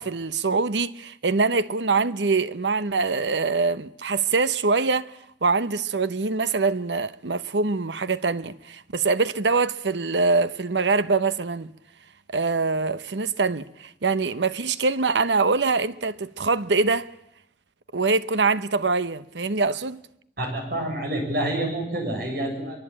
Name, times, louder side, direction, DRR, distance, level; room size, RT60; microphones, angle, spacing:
voice 1, 0.0-5.1 5.4-11.7 12.3-17.1 17.9-20.0, right 4 dB, 85° right, 0.9 m, -24 dB
voice 2, 20.4-22.8, right 1 dB, 60° right, 7.2 m, -28 dB
23.5 x 23.5 x 8.8 m
head